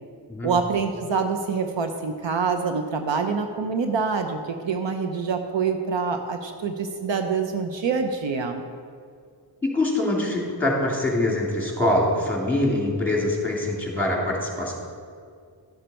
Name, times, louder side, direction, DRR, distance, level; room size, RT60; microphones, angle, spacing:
voice 1, 0.4-8.7, right 5 dB, 75° right, 6 dB, 0.8 m, -26 dB
voice 2, 9.6-14.7, left 1 dB, 5° left, -3 dB, 2.8 m, -24 dB
12.0 x 6.9 x 4.4 m, 2.2 s
cardioid pair, 70°, 45 cm